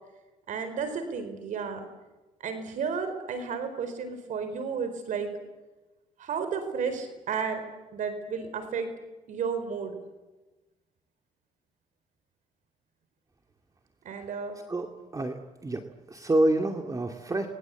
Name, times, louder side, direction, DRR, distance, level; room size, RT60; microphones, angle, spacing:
voice 1, 0.5-1.9 2.4-5.3 6.2-7.6 7.9-8.9 9.3-10.0 14.0-14.6, right 6 dB, 70° right, 9 dB, 4.4 m, -32 dB
voice 2, 15.1-15.8 16.1-17.5, right 1 dB, 25° right, 4 dB, 2.5 m, -27 dB
30.0 x 22.0 x 8.4 m, 1.1 s
cardioid pair, 80°, 13 cm